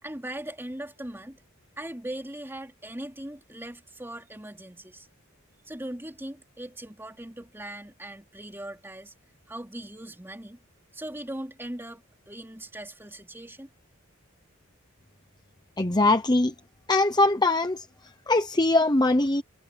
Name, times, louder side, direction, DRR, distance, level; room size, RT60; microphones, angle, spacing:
voice 1, 0.0-1.4 1.8-5.1 5.7-9.1 9.5-10.6 10.9-13.7, right 1 dB, 10° right, 3.1 m, -39 dB
voice 2, 15.8-16.5 16.9-17.9 18.3-19.4, left 2 dB, 20° left, 0.9 m, -22 dB
head